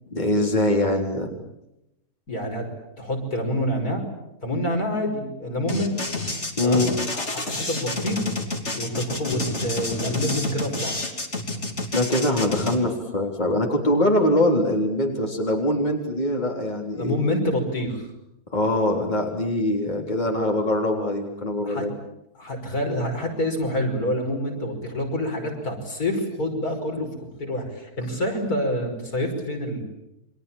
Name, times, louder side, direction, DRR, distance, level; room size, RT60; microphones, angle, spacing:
voice 1, 0.1-1.3 6.6-6.9 11.9-17.2 18.5-21.9, left 1 dB, 30° left, 1 dB, 3.9 m, -23 dB
voice 2, 2.3-2.7 3.0-4.0 4.4-5.9 6.6-6.9 7.1-8.3 8.7-11.0 17.0-18.1 21.6-21.9 22.4-27.1 27.4-29.8, left 1 dB, 75° left, 2 dB, 6.2 m, -27 dB
sound 1, 5.7-12.8, left 2 dB, 45° left, 3.4 m, -29 dB
29.5 x 25.0 x 7.3 m, 0.85 s
omnidirectional pair, 1.6 m